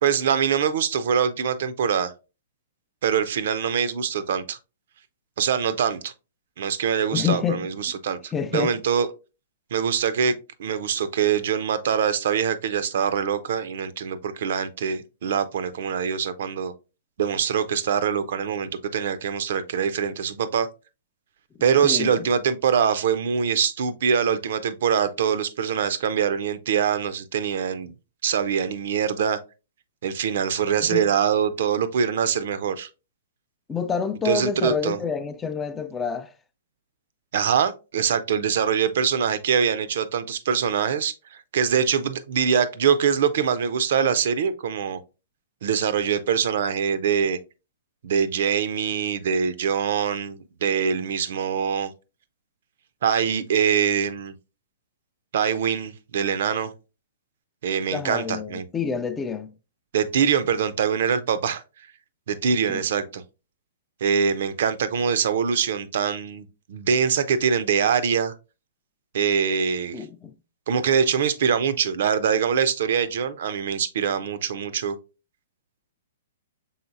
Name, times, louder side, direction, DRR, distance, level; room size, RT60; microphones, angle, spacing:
voice 1, 0.0-2.1 3.0-4.6 5.4-6.1 6.6-9.1 9.7-16.7 17.2-20.7 21.6-27.9 28.2-29.4 30.0-32.9 34.2-35.0 37.3-45.0 45.6-47.4 48.0-51.9 53.0-54.3 55.3-56.7 57.6-58.6 59.9-61.6 62.3-63.2 64.0-68.3 69.1-70.0 70.7-75.0, right 7 dB, 55° right, 0.5 m, -24 dB
voice 2, 7.1-7.7 8.3-8.7 21.8-22.3 30.8-31.1 33.7-36.3 57.9-59.5 62.7-62.8 69.9-70.3, left 6 dB, 15° left, 0.3 m, -28 dB
5.6 x 3.8 x 2.5 m
figure-of-eight pair, 115°, 0 cm